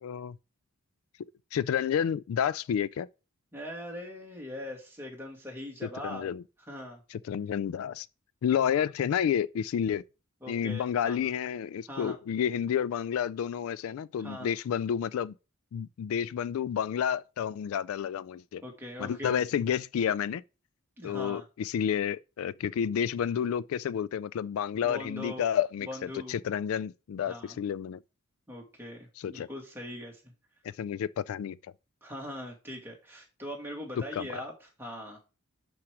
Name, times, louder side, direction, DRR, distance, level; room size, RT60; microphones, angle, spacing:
voice 1, 0.0-0.4 1.5-3.1 6.0-6.4 7.1-8.1 8.4-10.0 10.5-15.3 15.7-18.6 19.0-20.4 21.0-28.0 29.2-29.5 30.8-31.6 34.1-34.4, left 8 dB, 75° left, 0.3 m, -30 dB
voice 2, 3.5-6.3 6.7-7.0 10.4-11.3 11.9-12.2 14.2-14.5 18.6-19.4 21.0-21.4 24.8-25.5 25.8-26.4 27.2-27.6 28.5-30.2 32.0-35.2, left 1 dB, 10° right, 2.3 m, -41 dB
6.3 x 5.8 x 4.9 m
head